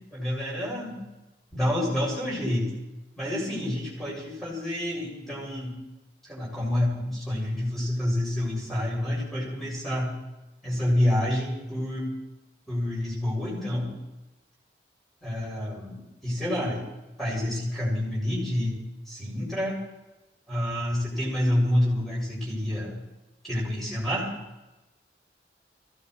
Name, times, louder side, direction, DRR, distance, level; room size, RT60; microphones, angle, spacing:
voice 1, 0.1-1.0 1.5-2.7 3.2-5.8 6.2-10.2 10.6-12.2 12.7-13.9 15.2-16.9 17.2-18.8 19.1-19.8 20.5-23.0 23.4-24.3, left 1 dB, ahead, -5 dB, 7.5 m, -28 dB
24.0 x 17.5 x 3.4 m, 1.0 s
head